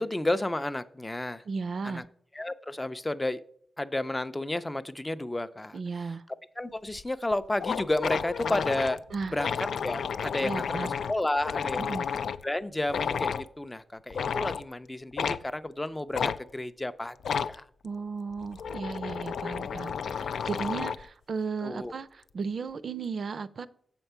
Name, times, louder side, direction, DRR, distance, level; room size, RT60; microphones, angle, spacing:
voice 1, 0.0-1.4 1.8-2.0 2.3-3.4 3.8-5.8 6.6-9.0 9.3-9.6 9.8-11.9 12.4-17.7 21.6-21.9, left 1 dB, 15° left, 12 dB, 0.4 m, -32 dB
voice 2, 1.5-2.0 5.7-6.2 9.1-9.4 10.4-11.0 11.8-12.1 17.8-23.7, right 5 dB, 55° right, 15 dB, 0.4 m, -35 dB
sound 1, 6.9-7.0 7.3-7.4 7.6-12.4 12.9-13.5 14.1-14.6 15.2-15.4 16.1-16.4 17.2-17.6 18.3-21.1, left 7 dB, 85° left, 0.3 m, -32 dB
7.9 x 4.5 x 6.8 m, 0.62 s
wide cardioid pair, 115°, 0 cm